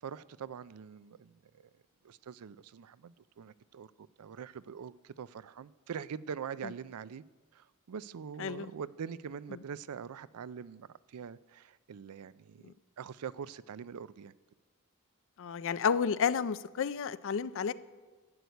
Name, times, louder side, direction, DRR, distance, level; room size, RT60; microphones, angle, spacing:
voice 1, 0.0-1.7 2.0-7.2 7.5-14.3, right 7 dB, 85° right, 0.4 m, -44 dB
voice 2, 8.4-8.7 15.4-17.7, left 6 dB, 60° left, 0.4 m, -31 dB
12.5 x 7.9 x 8.2 m
head